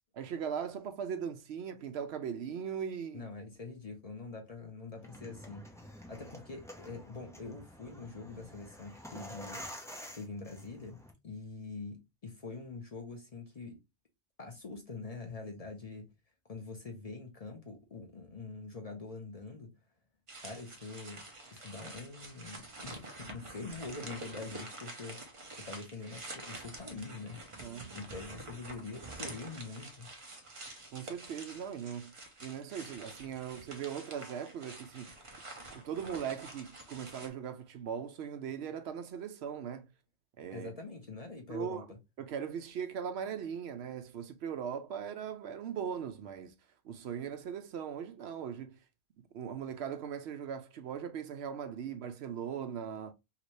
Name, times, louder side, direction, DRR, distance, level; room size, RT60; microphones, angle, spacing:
voice 1, 0.1-3.3 27.6-28.1 30.9-32.1 32.4-35.1 35.7-39.9 40.4-40.7 41.5-41.9 42.2-46.5 46.8-48.8 49.3-53.1, right 8 dB, 70° right, 0.8 m, -39 dB
voice 2, 3.1-9.6 10.1-11.0 11.2-13.8 14.4-16.1 16.5-19.7 20.4-21.3 21.5-27.5 27.9-30.1 40.5-42.0, left 3 dB, 40° left, 0.7 m, -44 dB
sound 1, 4.9-11.1, equal, 5° left, 0.3 m, -49 dB
sound 2, 20.3-37.3, right 2 dB, 35° right, 0.6 m, -48 dB
2.9 x 2.6 x 3.0 m
omnidirectional pair, 1.1 m